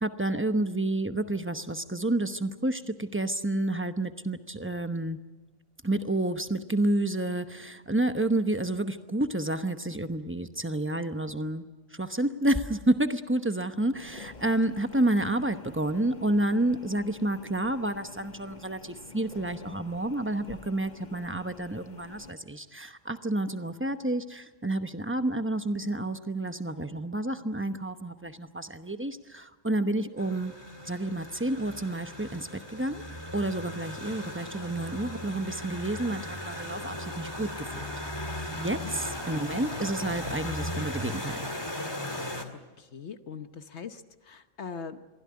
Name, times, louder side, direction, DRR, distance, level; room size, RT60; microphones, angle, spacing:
voice 1, 0.0-5.2 5.8-11.7 11.9-30.5 30.8-33.0 33.3-37.9 38.2-38.3 38.6-41.5, right 1 dB, 10° right, 9 dB, 0.8 m, -30 dB
sound 1, 14.0-22.3, left 4 dB, 35° left, 1.1 m, -49 dB
Wind instrument woodwind instrument, 29.9-37.8, left 1 dB, 80° left, 8.7 m, -57 dB
sound 2, 30.2-42.4, left 1 dB, 20° left, 2.0 m, -37 dB
voice 2, 42.8-45.0, left 6 dB, 60° left, 9 dB, 1.2 m, -41 dB
23.5 x 16.0 x 9.5 m, 1.2 s
omnidirectional pair, 1.4 m